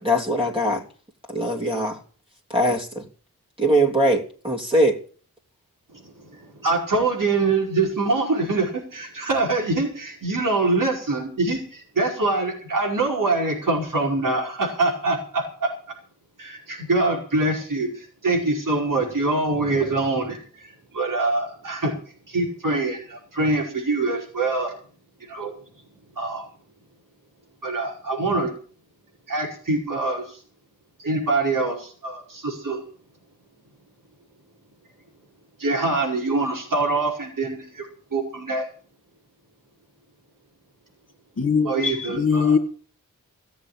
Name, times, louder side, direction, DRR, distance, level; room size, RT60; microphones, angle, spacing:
voice 1, 0.0-0.8 1.3-2.0 2.5-3.0 3.6-5.0, equal, 15° right, 3.1 m, -21 dB
voice 2, 5.9-15.7 16.4-24.7 25.2-25.5 26.2-26.4 27.6-28.5 29.3-30.4 31.0-32.8 35.6-38.7 41.7-42.6, right 3 dB, 65° right, 5.0 m, -24 dB
voice 3, 41.4-42.6, left 5 dB, 45° left, 2.4 m, -21 dB
16.0 x 7.3 x 8.8 m
wide cardioid pair, 75°, 34 cm